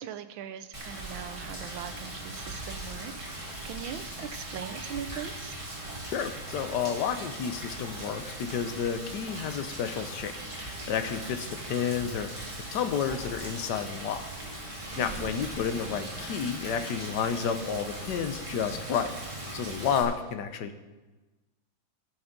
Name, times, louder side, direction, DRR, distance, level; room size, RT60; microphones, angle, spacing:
voice 1, 0.0-5.6 15.0-15.4, right 9 dB, 80° right, 10 dB, 1.5 m, -41 dB
Rain, 0.7-20.0, right 1 dB, 15° right, 2.1 m, -39 dB
voice 2, 6.1-12.4 12.7-14.3 15.0-19.1 19.5-20.8, left 7 dB, 65° left, 9 dB, 1.3 m, -31 dB
14.5 x 6.6 x 6.0 m, 1.2 s
omnidirectional pair, 2.2 m